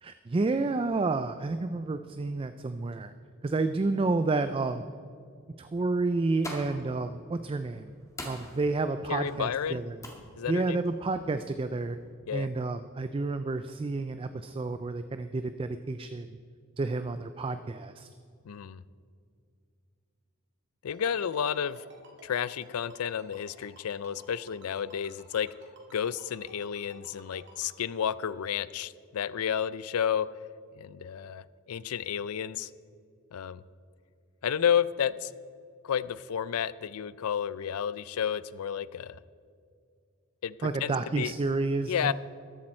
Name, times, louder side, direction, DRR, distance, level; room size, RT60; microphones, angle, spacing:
voice 1, 0.0-3.1 3.4-4.8 5.6-7.9 8.2-10.0 10.5-12.0 12.3-16.3 16.8-18.1 40.6-42.1, right 3 dB, 25° right, 10 dB, 0.3 m, -30 dB
sound 1, 6.1-12.1, left 1 dB, 15° left, 1.8 m, -47 dB
voice 2, 9.1-9.8 10.4-10.8 12.3-12.5 18.5-18.8 20.8-21.8 22.2-25.5 25.9-30.3 30.8-32.7 33.3-33.6 34.4-35.3 35.8-39.2 40.4-41.3 41.9-42.1, left 8 dB, 85° left, 18 dB, 0.4 m, -31 dB
Ringtone, 20.9-27.7, right 3 dB, 50° right, 2.3 m, -54 dB
14.0 x 11.5 x 4.3 m, 2.3 s
head